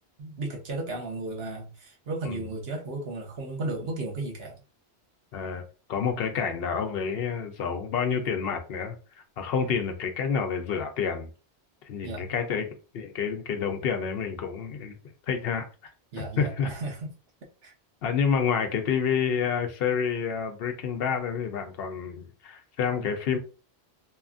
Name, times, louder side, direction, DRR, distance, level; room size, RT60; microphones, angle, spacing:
voice 1, 0.2-4.6 12.0-12.3 16.1-17.1 17.6-17.7, right 2 dB, 70° right, 1.0 m, -34 dB
voice 2, 5.3-5.6 5.9-11.3 11.8-12.7 12.9-15.0 15.3-15.9 16.4-16.7 18.0-23.4, left 6 dB, 70° left, 0.8 m, -29 dB
2.8 x 2.4 x 2.4 m
omnidirectional pair, 1.1 m